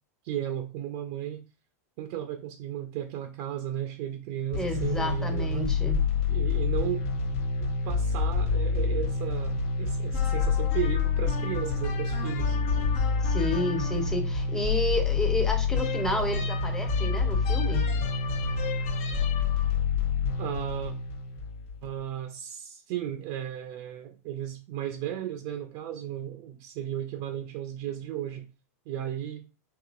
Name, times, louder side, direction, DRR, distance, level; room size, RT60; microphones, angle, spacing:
voice 1, 0.2-1.4 2.0-5.6 6.3-7.0 7.8-12.6 20.4-20.9 21.8-28.5 28.9-29.5, right 11 dB, 50° right, 5 dB, 0.5 m, -35 dB
sound 1, 4.5-21.8, left 5 dB, 55° left, 0.6 m, -27 dB
voice 2, 4.6-6.0 13.2-17.9, left 1 dB, 5° left, 5 dB, 0.7 m, -31 dB
4.8 x 2.9 x 2.5 m, 0.33 s
supercardioid pair, 140°, 9 cm